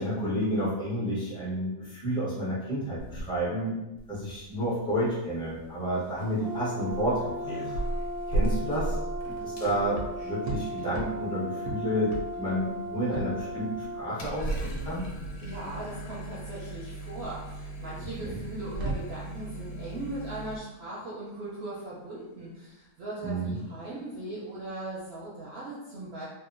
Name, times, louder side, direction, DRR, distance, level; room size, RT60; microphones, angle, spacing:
voice 1, 0.0-3.8 4.1-7.7 8.3-9.0 9.3-15.0 18.2-18.4 23.2-23.6, equal, 5° left, -8 dB, 0.3 m, -30 dB
sound 1, 3.0-3.7 4.0-20.6, right 1 dB, 75° left, 1.0 m, -37 dB
Brass instrument, 6.4-14.1, right 1 dB, 50° left, 0.8 m, -37 dB
sound 2, 7.1-25.3, right 2 dB, 80° right, 1.1 m, -42 dB
voice 2, 15.4-26.2, right 1 dB, 65° right, -6 dB, 0.6 m, -39 dB
2.8 x 2.2 x 2.5 m, 0.97 s
omnidirectional pair, 1.6 m